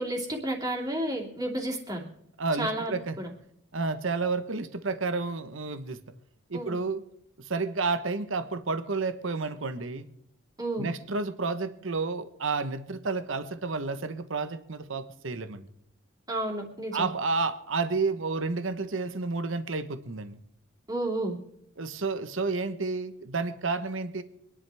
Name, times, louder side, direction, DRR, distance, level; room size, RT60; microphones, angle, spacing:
voice 1, 0.0-2.0 2.6-3.3 6.5-6.8 10.6-10.9 16.3-17.1 20.9-21.4, right 1 dB, 20° right, 0 dB, 2.7 m, -31 dB
voice 2, 2.4-3.2 3.7-6.0 6.5-7.0 7.4-10.1 10.8-15.7 16.9-20.4 21.8-24.2, right 3 dB, 65° right, 11 dB, 1.0 m, -30 dB
25.5 x 11.0 x 3.5 m, 0.75 s
head